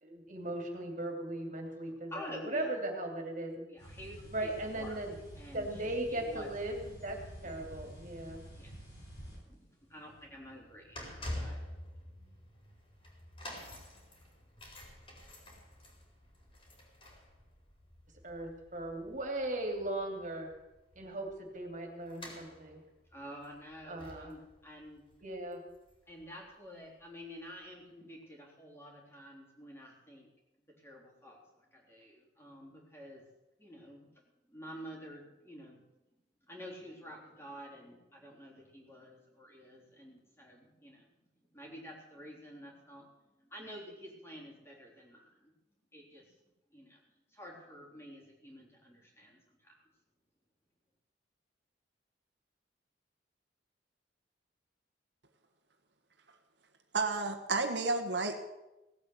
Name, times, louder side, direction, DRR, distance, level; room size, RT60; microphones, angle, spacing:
voice 1, 0.0-3.7 4.3-5.1 5.5-7.2 7.4-8.4 18.2-20.5 20.9-22.8 23.9-24.3 25.2-25.6, right 1 dB, 45° right, 3 dB, 2.9 m, -38 dB
voice 2, 1.9-2.7 3.7-5.0 5.4-6.5 7.4-7.6 8.6-8.9 9.4-11.6 23.1-25.0 26.1-30.3 30.7-33.3 33.6-34.1 34.5-35.8 36.4-41.1 41.5-43.1 43.4-45.5 45.9-46.3 46.7-47.0 47.3-49.8, equal, 15° left, -2 dB, 3.7 m, -50 dB
sound 1, 3.8-9.4, right 1 dB, 85° left, 7.3 m, -49 dB
sound 2, 9.9-26.2 26.5-26.7 27.5-27.6, left 1 dB, 30° left, 4.4 m, -49 dB
voice 3, 56.9-58.4, right 3 dB, 80° right, 6 dB, 1.5 m, -31 dB
17.5 x 8.5 x 8.2 m, 0.97 s
head